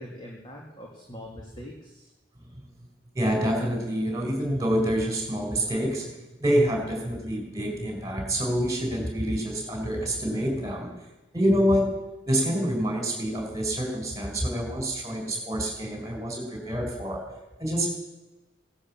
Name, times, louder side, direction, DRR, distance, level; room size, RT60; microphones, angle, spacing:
voice 1, 0.0-2.1, equal, 25° left, -1 dB, 2.2 m, -43 dB
voice 2, 3.1-6.1 6.4-10.9 11.3-11.9 12.2-17.2 17.6-17.9, equal, 15° right, 1 dB, 4.4 m, -27 dB
17.0 x 11.5 x 7.3 m, 1.1 s
head